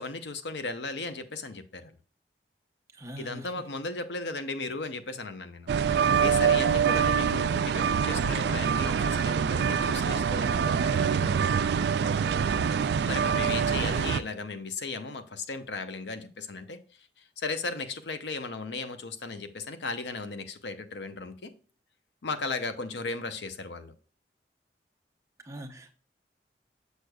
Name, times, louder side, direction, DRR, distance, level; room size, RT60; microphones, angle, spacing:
voice 1, 0.0-1.9 3.2-5.7 6.2-11.6 13.0-21.5 22.2-23.9, left 3 dB, 85° left, 0.7 m, -36 dB
voice 2, 2.9-3.5 6.9-7.4 13.5-13.7 25.4-25.9, right 1 dB, 15° right, 0.8 m, -43 dB
sound 1, 5.7-14.2, right 7 dB, 75° right, 0.3 m, -25 dB
6.6 x 6.4 x 2.3 m
head